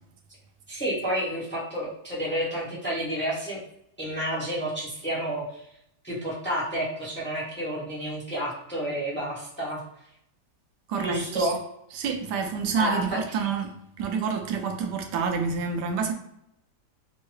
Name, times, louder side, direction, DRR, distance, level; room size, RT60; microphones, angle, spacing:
voice 1, 0.7-3.6 4.0-5.6 6.0-9.8 11.0-11.6 12.7-13.0 13.3-13.4, equal, 10° left, 0.9 m, -30 dB
voice 2, 10.9-11.5 11.9-16.1, right 5 dB, 85° right, 1.2 m, -28 dB
3.6 x 2.2 x 3.1 m
omnidirectional pair, 1.8 m